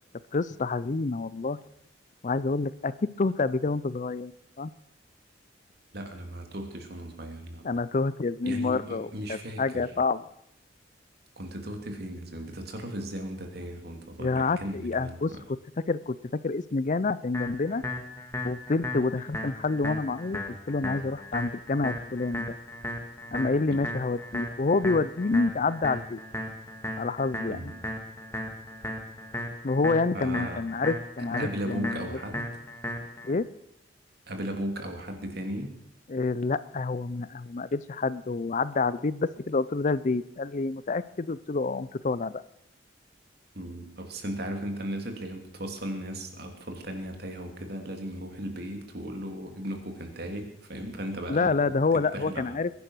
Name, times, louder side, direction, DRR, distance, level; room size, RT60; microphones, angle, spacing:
voice 1, 0.3-1.6 2.2-4.3 4.6-4.7 7.6-10.2 14.2-15.3 15.9-16.2 16.4-17.8 18.4-22.5 23.3-26.2 27.0-27.7 29.6-32.0 33.2-33.5 36.1-42.4 51.3-52.7, left 3 dB, 40° left, 17 dB, 0.5 m, -28 dB
voice 2, 5.9-7.7 8.4-9.8 11.4-15.4 23.7-23.8 27.5-27.7 30.1-30.6 31.4-32.5 34.3-35.7 43.5-52.6, right 1 dB, 60° right, 4 dB, 2.9 m, -36 dB
sound 1, 17.3-33.3, left 1 dB, 15° left, 2.0 m, -36 dB
21.5 x 10.5 x 6.2 m, 0.75 s
head